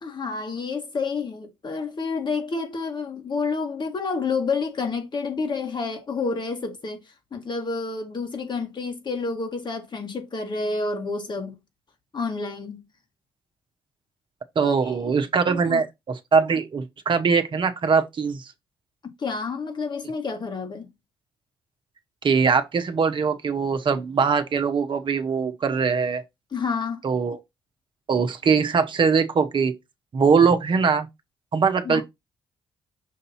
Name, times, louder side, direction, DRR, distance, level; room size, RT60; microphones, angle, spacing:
voice 1, 0.0-7.0 7.3-11.6 12.1-12.8 14.6-15.1 15.6-15.8 19.0-20.9 26.5-27.0 31.8-32.0, left 4 dB, 45° left, 1.9 m, -29 dB
voice 2, 14.5-18.5 22.2-26.2 27.0-27.4 28.1-29.7 30.1-31.1 31.5-32.0, right 5 dB, 50° right, 1.1 m, -22 dB
6.5 x 2.7 x 5.6 m
hypercardioid pair, 45°, 11 cm